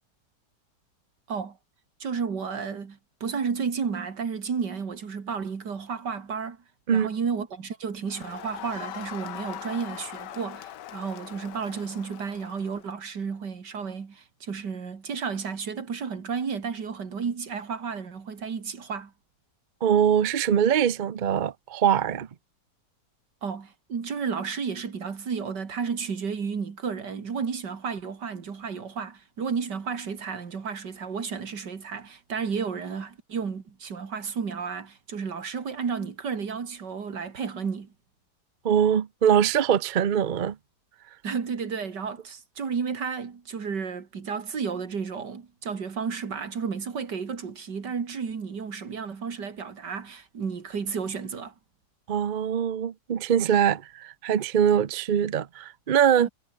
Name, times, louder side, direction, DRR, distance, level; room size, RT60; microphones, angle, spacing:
voice 1, 2.0-6.6 6.9-19.1 23.4-37.9 41.2-51.5 56.2-56.3, right 6 dB, 80° right, 2.8 m, -32 dB
Crowd, 8.1-12.9, left 12 dB, 85° left, 1.5 m, -41 dB
voice 2, 19.8-22.3 38.6-40.6 52.1-56.3, right 8 dB, 50° right, 0.6 m, -23 dB
omnidirectional pair, 1.8 m